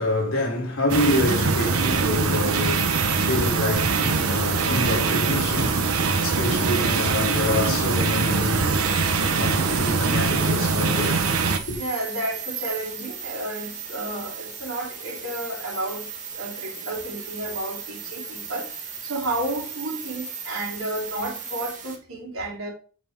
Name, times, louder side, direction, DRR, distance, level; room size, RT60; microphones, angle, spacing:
voice 1, 0.0-8.8 9.3-11.3 11.7-11.8, left 2 dB, 70° left, 3.6 m, -27 dB
sound 1, 0.9-11.6, right 4 dB, 85° right, 1.1 m, -23 dB
sound 2, 2.8-21.9, right 6 dB, 35° right, 1.9 m, -36 dB
voice 2, 11.8-22.7, right 1 dB, 70° right, 3.7 m, -32 dB
8.5 x 6.7 x 3.7 m
head